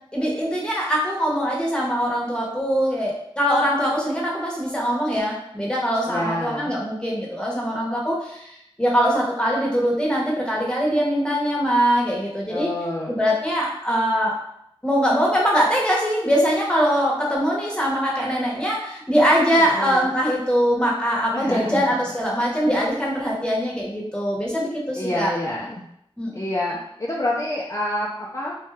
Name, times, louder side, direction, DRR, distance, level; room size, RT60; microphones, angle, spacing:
voice 1, 0.1-12.7 13.1-14.4 14.8-25.3 26.2-26.3, equal, 10° left, -3 dB, 0.9 m, -22 dB
voice 2, 6.1-6.7 12.5-13.1 19.6-20.1 21.3-21.8 24.9-25.9 26.3-28.5, left 1 dB, 35° left, -5 dB, 0.4 m, -27 dB
2.7 x 2.2 x 3.2 m, 0.75 s
wide cardioid pair, 55°, 10 cm